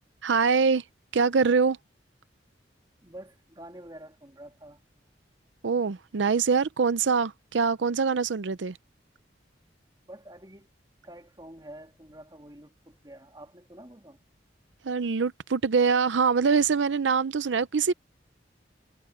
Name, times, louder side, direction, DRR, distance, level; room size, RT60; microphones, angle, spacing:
voice 1, 0.2-0.8 1.1-1.8 5.6-8.8 14.8-17.9, right 5 dB, 85° right, 0.5 m, -24 dB
voice 2, 3.0-4.8 10.1-10.7 11.0-14.2, right 1 dB, 20° right, 2.8 m, -47 dB
head